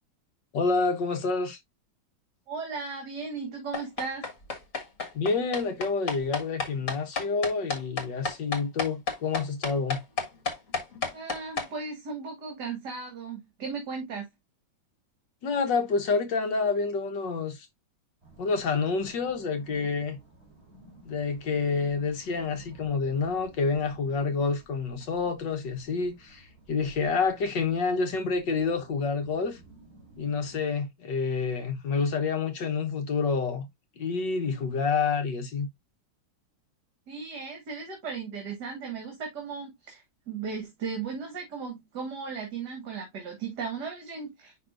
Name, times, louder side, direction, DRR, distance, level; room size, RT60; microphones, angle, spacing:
voice 1, 0.5-1.6 5.1-10.0 15.4-17.7 18.4-20.2 21.0-29.6 30.2-33.7 34.0-35.7, left 4 dB, 65° left, 1.7 m, -28 dB
voice 2, 2.5-4.3 11.1-14.3 37.1-44.7, right 5 dB, 55° right, 2.2 m, -36 dB
sound 1, 3.7-11.7, left 5 dB, 40° left, 1.8 m, -31 dB
sound 2, 18.2-30.6, right 2 dB, 30° right, 3.1 m, -54 dB
10.5 x 3.6 x 2.4 m
omnidirectional pair, 2.2 m